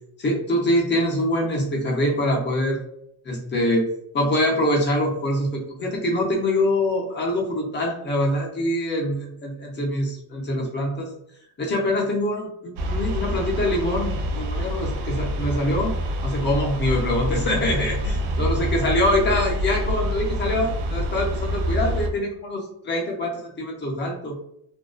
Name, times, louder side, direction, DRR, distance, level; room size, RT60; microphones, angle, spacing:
voice 1, 0.2-2.8 3.2-11.1 11.6-16.0 16.2-24.4, left 1 dB, 25° left, -1 dB, 0.4 m, -24 dB
sound 1, 12.8-22.1, equal, 75° right, 0.5 m, -26 dB
2.4 x 2.2 x 2.3 m, 0.72 s
cardioid pair, 165°, 48 cm